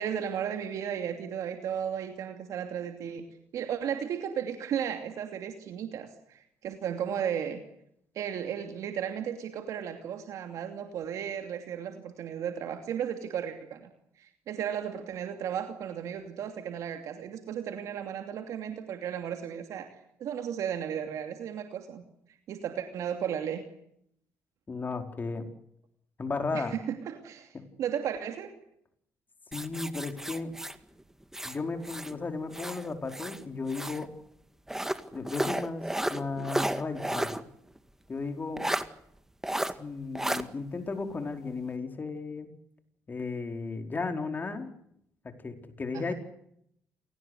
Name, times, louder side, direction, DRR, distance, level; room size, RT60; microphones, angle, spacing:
voice 1, 0.0-3.3 3.5-7.6 8.1-13.9 14.2-22.0 22.5-23.6 26.5-28.5 45.9-46.1, right 8 dB, 75° right, 6 dB, 2.8 m, -35 dB
voice 2, 24.7-25.5 26.2-26.8 27.5-27.6 29.5-30.5 31.4-34.1 35.1-37.4 38.1-38.6 39.8-42.5 43.1-44.7 45.2-46.1, left 3 dB, 35° left, 6 dB, 4.8 m, -35 dB
sound 1, 29.5-32.2 32.5-34.1 34.7-37.4 37.8-37.9 38.6-38.9 39.4-39.7 40.2-40.4, right 1 dB, 5° right, 1.9 m, -33 dB
28.0 x 19.0 x 8.2 m, 0.72 s
cardioid pair, 80°, 6 cm